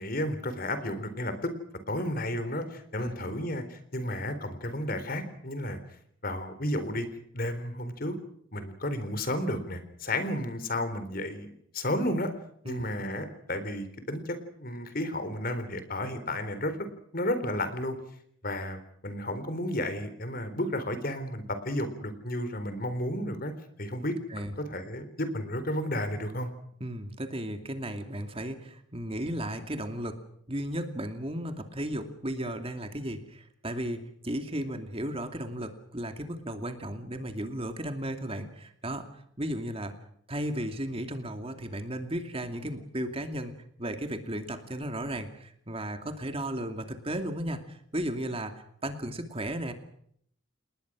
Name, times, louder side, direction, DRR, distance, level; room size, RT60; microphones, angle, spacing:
voice 1, 0.0-1.5 1.9-5.8 6.2-7.1 7.3-8.1 8.5-12.3 12.6-16.8 17.1-18.0 18.4-23.5 23.8-24.2 24.7-26.5, left 1 dB, 45° left, 11 dB, 3.9 m, -32 dB
voice 2, 3.0-3.3 12.6-12.9 24.3-24.5 26.8-30.2 30.5-39.1 39.4-40.0 40.3-49.7, right 1 dB, 30° right, 6 dB, 2.6 m, -35 dB
29.5 x 20.0 x 6.3 m, 0.68 s
head